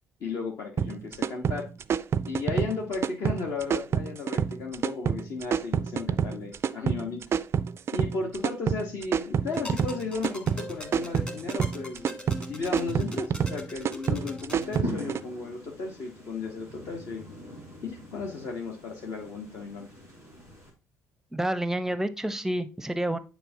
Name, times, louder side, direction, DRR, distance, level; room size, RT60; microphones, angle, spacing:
voice 1, 0.2-1.7 2.3-7.2 7.9-12.2 12.4-17.3 17.8-19.9, left 4 dB, 50° left, -1 dB, 1.2 m, -35 dB
sound 1, 0.8-15.2, right 7 dB, 35° right, 0.4 m, -28 dB
sound 2, 9.5-14.9, left 1 dB, 15° left, 1.6 m, -41 dB
sound 3, 14.8-20.7, equal, 85° left, 2.2 m, -41 dB
voice 2, 21.3-23.2, right 1 dB, 5° right, 13 dB, 0.7 m, -29 dB
9.1 x 4.5 x 2.8 m, 0.32 s
figure-of-eight pair, 50°, 7 cm